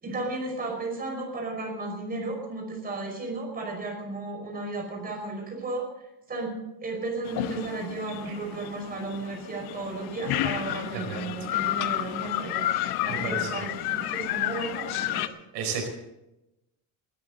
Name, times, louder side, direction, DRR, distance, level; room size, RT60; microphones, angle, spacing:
voice 1, 0.0-5.9 6.3-12.7 13.0-15.3, right 3 dB, 20° right, 0 dB, 5.6 m, -34 dB
sound 1, 7.3-15.3, left 13 dB, 65° left, 1.0 m, -31 dB
voice 2, 13.2-13.5 15.5-15.9, right 5 dB, 85° right, 3 dB, 4.6 m, -32 dB
21.0 x 13.5 x 4.0 m, 0.92 s
cardioid pair, 160°, 41 cm